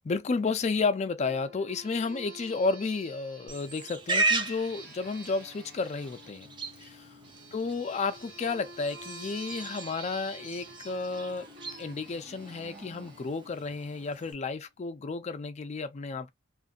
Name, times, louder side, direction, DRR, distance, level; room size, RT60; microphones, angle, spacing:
voice 1, 0.0-6.5 6.8-7.1 7.5-11.5 11.8-16.3, left 4 dB, 35° left, 0.4 m, -32 dB
sound 1, 1.2-14.4, right 2 dB, 50° right, 1.1 m, -49 dB
Livestock farm animals working animals, 3.5-14.3, right 3 dB, 25° right, 0.5 m, -37 dB
2.5 x 2.5 x 2.3 m
head